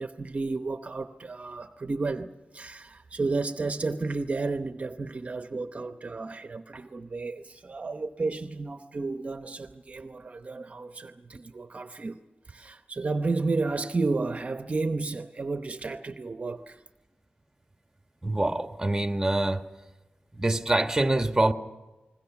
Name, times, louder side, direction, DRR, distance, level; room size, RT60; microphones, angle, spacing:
voice 1, 0.0-16.8, right 3 dB, 45° right, 0.8 m, -32 dB
voice 2, 18.2-19.7 20.3-21.5, right 2 dB, 15° right, 1.5 m, -25 dB
29.5 x 21.0 x 5.9 m
wide cardioid pair, 100°, 3 cm